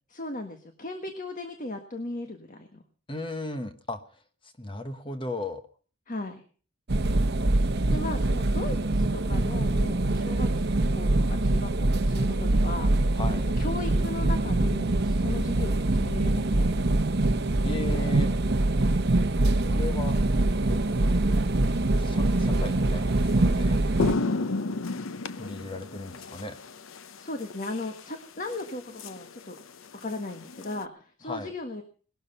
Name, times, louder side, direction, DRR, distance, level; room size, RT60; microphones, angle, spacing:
voice 1, 0.1-2.8 6.1-6.4 7.9-12.9 13.6-16.8 27.2-29.6 30.0-31.8, left 2 dB, 40° left, 6 dB, 1.5 m, -37 dB
voice 2, 3.1-5.6 13.1-13.5 17.6-18.3 19.5-20.2 20.6-20.8 22.0-23.8 25.3-26.6 31.2-31.5, left 2 dB, 25° left, 8 dB, 1.1 m, -36 dB
sound 1, 6.9-24.1, right 2 dB, 55° right, 1.0 m, -24 dB
sound 2, 20.3-20.5 22.7-22.8 23.2-23.4 23.7-30.9, left 3 dB, 80° left, 0.8 m, -34 dB
19.5 x 12.5 x 5.6 m, 0.42 s
head